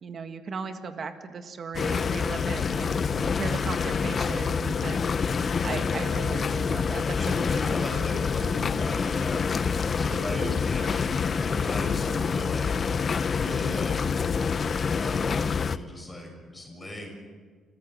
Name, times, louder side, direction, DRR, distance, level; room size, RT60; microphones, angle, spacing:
voice 1, 0.0-5.1 5.6-7.8 10.8-10.9, right 5 dB, 50° right, 7 dB, 1.7 m, -37 dB
sound 1, 1.7-15.8, left 6 dB, 45° left, 0.7 m, -27 dB
voice 2, 7.2-13.0 13.3-14.1 14.7-17.1, left 1 dB, 20° left, 1 dB, 6.8 m, -37 dB
29.5 x 14.5 x 6.3 m, 1.5 s
cardioid pair, 90°, 0 cm